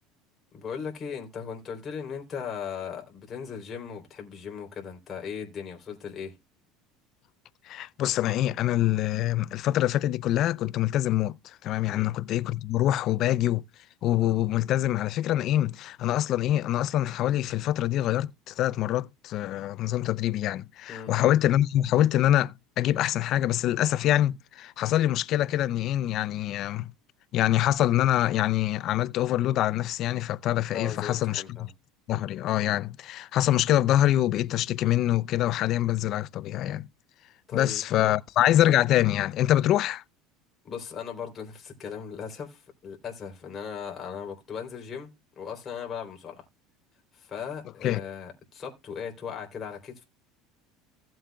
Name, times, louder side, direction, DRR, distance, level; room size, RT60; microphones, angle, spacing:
voice 1, 0.5-6.3 11.9-12.1 20.9-21.1 30.7-31.7 37.5-38.2 40.6-46.4 47.1-50.0, left 7 dB, 30° left, 3.3 m, -38 dB
voice 2, 7.7-11.3 11.6-13.6 14.0-26.9 27.3-31.4 32.1-36.8 37.5-40.0 47.8-48.0, left 13 dB, 50° left, 0.4 m, -25 dB
16.0 x 7.7 x 2.3 m
supercardioid pair, 135°, 0 cm